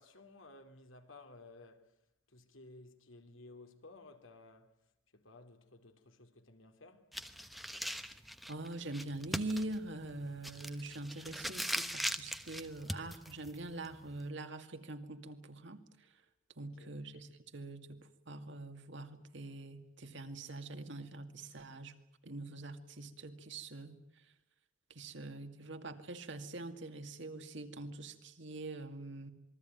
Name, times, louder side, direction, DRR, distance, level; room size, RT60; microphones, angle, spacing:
voice 1, 0.0-2.0 2.3-4.8 5.1-7.2 16.6-17.1, left 2 dB, 70° left, 2.8 m, -56 dB
sound 1, 7.1-14.3, equal, ahead, 1.0 m, -41 dB
voice 2, 8.5-15.8 16.6-21.9 22.2-24.0 24.9-29.3, right 2 dB, 60° right, 2.2 m, -44 dB
27.5 x 22.0 x 9.2 m
head